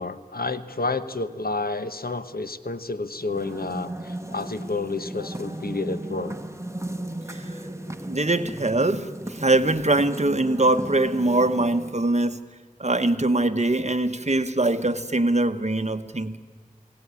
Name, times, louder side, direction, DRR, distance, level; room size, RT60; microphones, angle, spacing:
voice 1, 0.0-6.4, left 3 dB, 90° left, 1.0 m, -30 dB
sound 1, 3.2-12.1, right 1 dB, 20° right, 1.3 m, -36 dB
voice 2, 8.1-12.4 12.8-16.4, right 2 dB, 50° right, 1.1 m, -22 dB
21.5 x 17.5 x 9.7 m
wide cardioid pair, 40°, 15 cm